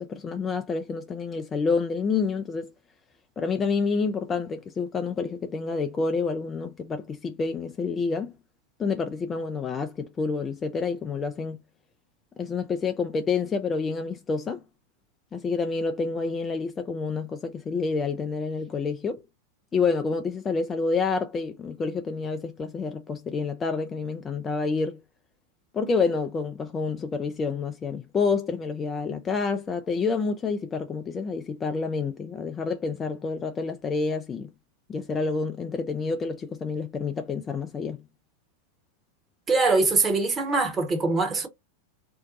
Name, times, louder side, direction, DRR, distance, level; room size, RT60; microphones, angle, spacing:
voice 1, 0.0-2.7 3.4-8.3 8.8-11.6 12.4-14.6 15.3-19.2 19.7-25.0 25.7-34.5 34.9-38.0, left 4 dB, 20° left, 0.3 m, -28 dB
voice 2, 39.5-41.5, right 3 dB, 20° right, 0.9 m, -23 dB
2.6 x 2.1 x 3.8 m
figure-of-eight pair, 90°, 0 cm